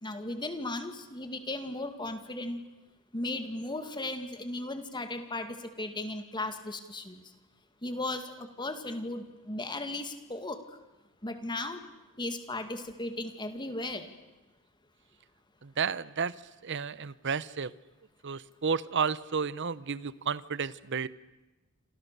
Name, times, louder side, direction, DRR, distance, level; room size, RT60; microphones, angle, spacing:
voice 1, 0.0-2.6 3.1-7.2 7.8-10.6 11.2-11.8 12.2-14.1, left 2 dB, 20° left, 7 dB, 2.2 m, -36 dB
voice 2, 15.6-16.3 16.6-17.7 18.2-21.1, right 6 dB, 55° right, 17 dB, 0.8 m, -32 dB
28.5 x 27.5 x 6.8 m, 1.1 s
head